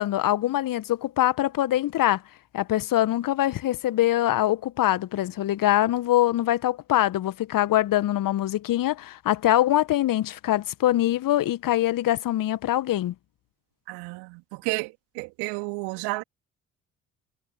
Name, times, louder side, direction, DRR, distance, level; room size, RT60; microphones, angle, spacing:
voice 1, 0.0-2.2 2.5-13.1, left 14 dB, 50° left, 1.6 m, -23 dB
voice 2, 13.9-16.2, right 30 dB, 65° right, 3.2 m, -32 dB
figure-of-eight pair, 45°, 42 cm